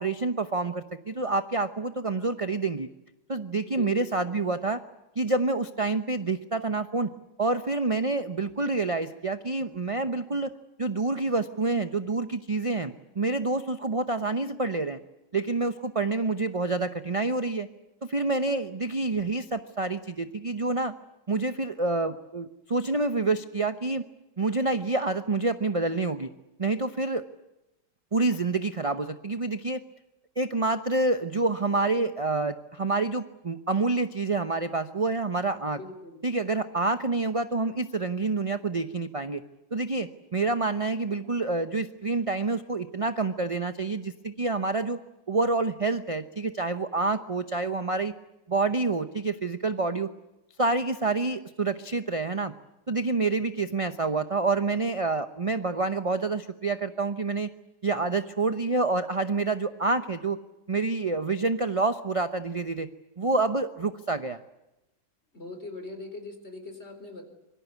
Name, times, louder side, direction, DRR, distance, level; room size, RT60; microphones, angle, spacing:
voice 1, 0.0-2.9 3.3-4.8 5.2-7.1 7.4-10.5 10.8-15.0 15.3-17.7 18.0-20.9 21.3-24.0 24.4-26.3 26.6-27.2 28.1-29.8 30.4-35.8 36.2-39.4 39.7-45.0 45.3-48.1 48.5-50.1 50.6-52.5 52.9-57.5 57.8-60.4 60.7-62.9 63.2-64.4, right 3 dB, 30° right, 9 dB, 0.6 m, -27 dB
voice 2, 3.7-4.5 35.7-36.2 65.3-67.3, left 2 dB, 35° left, 7 dB, 4.5 m, -41 dB
25.5 x 24.0 x 8.3 m, 0.97 s
omnidirectional pair, 1.9 m